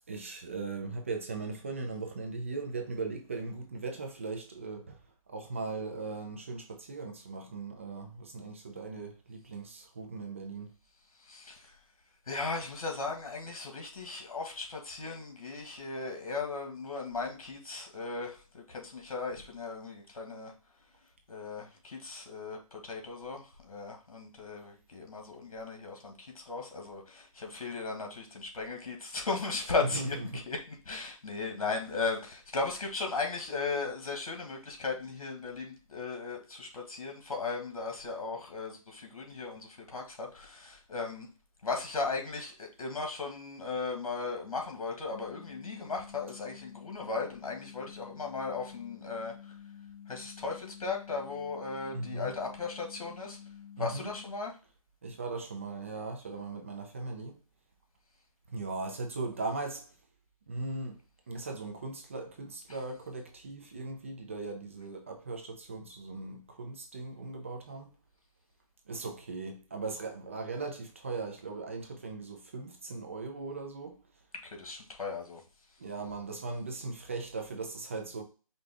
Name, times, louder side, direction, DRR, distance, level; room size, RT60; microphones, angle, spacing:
voice 1, 0.1-5.0 5.3-10.7 29.9-30.4 51.9-52.3 53.8-54.1 55.0-57.4 58.5-59.9 60.5-61.0 61.3-67.9 68.9-74.0 75.8-78.2, right 3 dB, 25° right, 0.4 m, -38 dB
voice 2, 11.2-11.8 12.3-20.5 21.3-41.3 41.6-49.6 50.1-53.4 53.8-54.6 62.7-62.8 74.3-75.4, left 4 dB, 75° left, 1.6 m, -37 dB
sound 1, 45.1-54.3, left 9 dB, 55° left, 0.4 m, -50 dB
5.2 x 2.3 x 3.4 m
hypercardioid pair, 165°, 18 cm